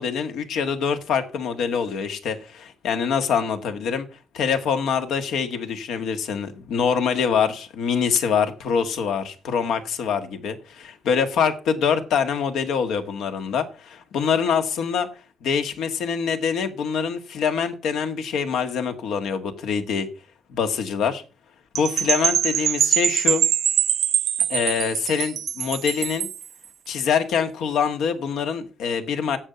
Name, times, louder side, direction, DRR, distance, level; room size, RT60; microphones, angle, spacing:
voice 1, 0.0-4.1 4.3-15.1 15.4-20.1 20.5-21.2 21.7-23.4 24.5-26.3 26.9-29.4, left 6 dB, 80° left, 1.6 m, -24 dB
Percussion / Wind chime, 21.7-26.4, right 9 dB, 65° right, 0.8 m, -23 dB
9.9 x 8.1 x 6.8 m
cardioid pair, 90°, 0 cm